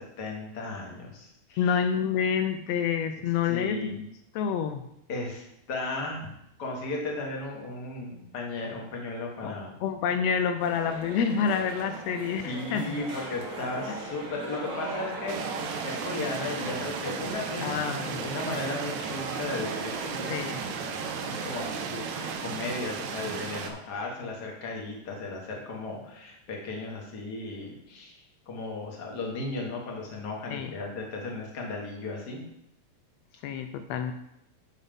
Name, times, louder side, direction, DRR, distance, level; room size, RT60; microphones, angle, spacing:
voice 1, 0.0-1.8 3.5-3.9 5.1-6.3 6.6-9.8 12.4-20.6 21.2-32.4, left 2 dB, 40° left, -1 dB, 1.8 m, -36 dB
voice 2, 1.6-4.0 4.3-4.8 9.4-9.5 9.8-13.0 17.6-18.3 18.5-18.6 20.3-20.6 30.5-30.7 33.4-34.1, left 7 dB, 90° left, 7 dB, 1.4 m, -28 dB
sound 1, 10.6-22.3, right 3 dB, 50° right, 1.5 m, -39 dB
sound 2, 15.3-23.7, right 6 dB, 75° right, 2.1 m, -35 dB
7.5 x 6.1 x 5.3 m, 0.79 s
omnidirectional pair, 3.6 m